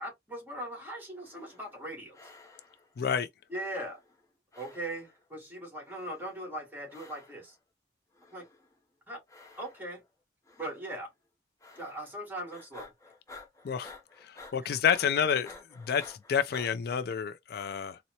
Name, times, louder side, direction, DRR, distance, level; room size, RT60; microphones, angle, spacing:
voice 1, 0.0-2.2 3.5-4.0 4.6-7.6 8.3-8.5 9.1-9.2 9.6-10.0 10.6-11.1 11.7-12.9 14.6-14.8, right 1 dB, 10° right, 1.3 m, -39 dB
sound 1, 1.1-1.9 2.1-2.9 3.5-4.3 4.5-5.3 5.8-6.5 6.9-7.5 8.1-8.8 9.3-10.1 10.5-10.9 11.6-12.2 12.5-16.7, left 3 dB, 15° left, 0.6 m, -53 dB
voice 2, 3.0-3.3 13.6-13.9 14.2-15.5 15.9-18.0, left 7 dB, 55° left, 0.3 m, -29 dB
4.0 x 2.0 x 2.8 m
head